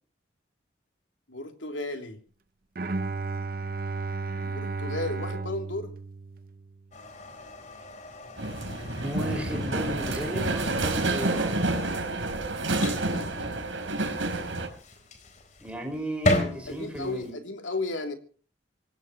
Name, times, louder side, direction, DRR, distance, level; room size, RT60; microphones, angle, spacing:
voice 1, 1.3-2.2 4.4-5.9 13.1-13.5 16.7-18.1, left 2 dB, 85° left, 4 dB, 3.3 m, -34 dB
Bowed string instrument, 2.8-6.9, right 3 dB, 50° right, 0.7 m, -33 dB
sound 1, 6.9-17.3, left 1 dB, 40° left, 4.4 m, -35 dB
sound 2, 8.4-14.7, right 2 dB, 90° right, 4.3 m, -29 dB
voice 2, 9.0-11.6 15.6-17.3, equal, 5° right, 2 dB, 5.6 m, -34 dB
26.5 x 16.5 x 3.1 m, 0.42 s
head